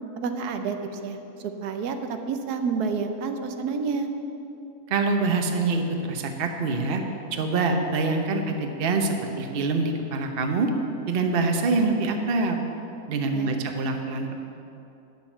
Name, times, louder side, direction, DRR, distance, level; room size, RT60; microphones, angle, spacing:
voice 1, 0.2-1.2 1.4-4.1 13.3-13.6, right 5 dB, 80° right, 6 dB, 1.3 m, -29 dB
voice 2, 4.9-7.0 7.3-10.7 11.1-12.6 13.1-14.3, right 3 dB, 45° right, 4 dB, 0.9 m, -25 dB
9.4 x 7.5 x 7.2 m, 2.8 s
omnidirectional pair, 1.6 m